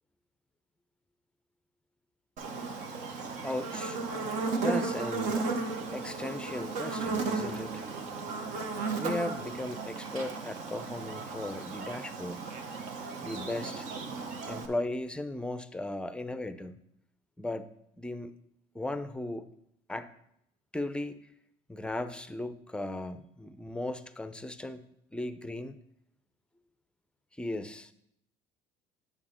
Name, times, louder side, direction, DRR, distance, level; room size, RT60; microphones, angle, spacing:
Buzz, 2.4-14.7, right 4 dB, 60° right, 1.2 m, -35 dB
voice 1, 3.4-4.0 4.6-5.6 5.9-7.8 9.0-12.4 13.2-13.9 14.5-16.7 17.4-17.7 18.0-18.3 18.7-19.5 19.9-20.1 20.7-21.2 21.7-24.8 25.1-25.8 27.4-27.9, left 1 dB, 5° left, 12 dB, 0.5 m, -36 dB
8.8 x 7.0 x 4.3 m, 0.76 s
supercardioid pair, 105°, 14 cm